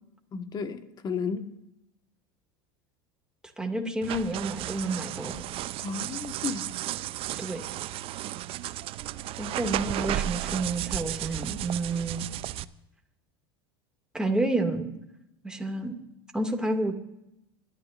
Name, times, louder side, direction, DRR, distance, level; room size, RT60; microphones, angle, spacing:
voice 1, 0.3-1.5 5.8-6.7, left 5 dB, 35° left, 9 dB, 1.5 m, -33 dB
voice 2, 3.6-5.4 7.4-7.6 9.4-12.3 14.1-14.9 15.4-16.0 16.3-16.9, right 2 dB, 5° right, 3 dB, 2.2 m, -29 dB
sound 1, 4.0-12.6, right 14 dB, 45° right, 0.5 m, -34 dB
29.5 x 12.5 x 2.6 m, 0.84 s
hypercardioid pair, 100°, 13 cm